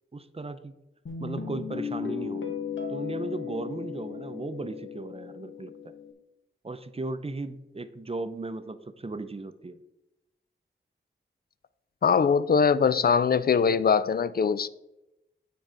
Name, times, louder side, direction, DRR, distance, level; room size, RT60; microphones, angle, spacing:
voice 1, 0.1-0.7 1.2-2.6 2.9-5.9 6.6-9.8, right 2 dB, 30° right, 0.6 m, -36 dB
Guitar, 1.1-6.1, left 7 dB, 70° left, 1.0 m, -36 dB
voice 2, 12.0-14.7, left 6 dB, 50° left, 0.4 m, -22 dB
8.6 x 4.6 x 3.9 m
cardioid pair, 45°, 21 cm